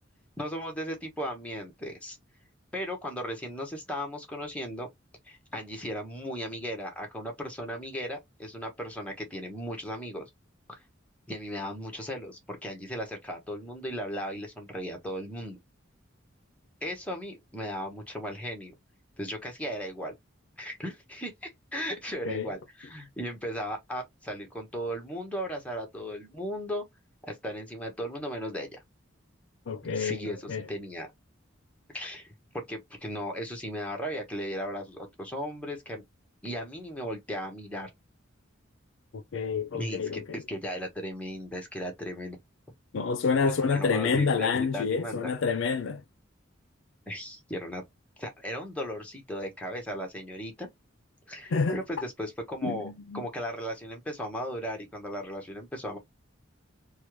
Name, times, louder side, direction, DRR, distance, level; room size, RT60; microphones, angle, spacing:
voice 1, 0.4-2.2 2.7-4.9 5.3-10.2 11.3-15.6 16.8-18.7 19.2-20.1 20.6-26.8 27.3-28.8 29.9-31.1 31.9-32.3 32.5-36.0 36.4-37.9 39.7-40.2 40.5-42.4 43.4-45.3 47.1-47.8 48.2-50.7 51.3-56.0, equal, 5° left, 1.1 m, -36 dB
voice 2, 29.7-30.7 39.1-40.4 42.9-46.0 51.5-51.8 52.6-53.2, left 5 dB, 70° left, 0.4 m, -28 dB
3.3 x 2.2 x 3.0 m
head